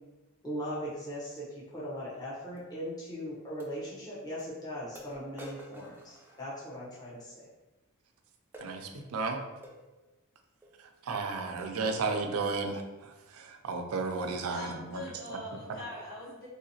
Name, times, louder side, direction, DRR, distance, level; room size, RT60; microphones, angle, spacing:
voice 1, 0.4-7.5, equal, 20° left, -8 dB, 0.8 m, -39 dB
sound 1, 2.6-2.7 3.6-3.7 4.4-4.5 5.0-6.9 8.5-8.8 9.6-9.8 10.6-10.8 11.2-11.3 11.6-11.9 12.4-12.7, right 1 dB, 10° right, 0.4 m, -50 dB
voice 2, 8.6-9.4 11.0-15.1, right 4 dB, 85° right, 5 dB, 0.4 m, -33 dB
voice 3, 14.5-16.5, left 1 dB, 50° left, -7 dB, 1.2 m, -42 dB
3.4 x 2.7 x 2.7 m, 1.1 s
head